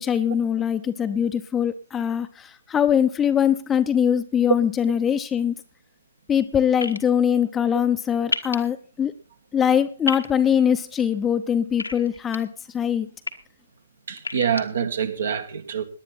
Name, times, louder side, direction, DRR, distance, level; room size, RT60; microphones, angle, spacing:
voice 1, 0.0-5.6 6.3-9.1 9.5-13.1, left 8 dB, 15° left, 0.7 m, -22 dB
sound 1, 6.8-7.0 8.3-8.6 10.1-10.3 11.8-12.4 13.0-13.3 14.2-14.6, left 3 dB, 90° left, 1.5 m, -28 dB
voice 2, 14.1-15.8, right 8 dB, 65° right, 2.0 m, -26 dB
18.5 x 10.5 x 4.2 m
figure-of-eight pair, 125°, 0 cm